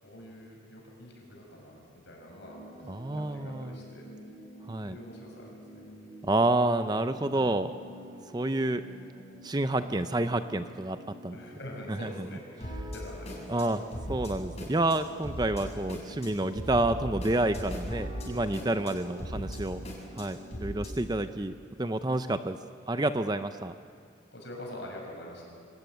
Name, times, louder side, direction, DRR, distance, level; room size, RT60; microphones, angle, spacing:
voice 1, 0.0-4.1 4.8-6.0 9.0-9.7 11.3-13.6 15.5-15.7 24.3-25.4, left 1 dB, 60° left, 0 dB, 7.0 m, -46 dB
sound 1, 2.3-20.9, equal, 30° left, 6.6 m, -42 dB
voice 2, 2.9-3.8 4.7-5.0 6.3-7.7 8.3-8.8 9.4-11.0 11.2-11.4 12.0-12.1 13.5-13.8 14.1-19.8 20.2-21.5 21.8-22.6 22.9-23.7, right 2 dB, 20° right, 10 dB, 0.6 m, -29 dB
26.5 x 17.0 x 9.4 m, 2.2 s
head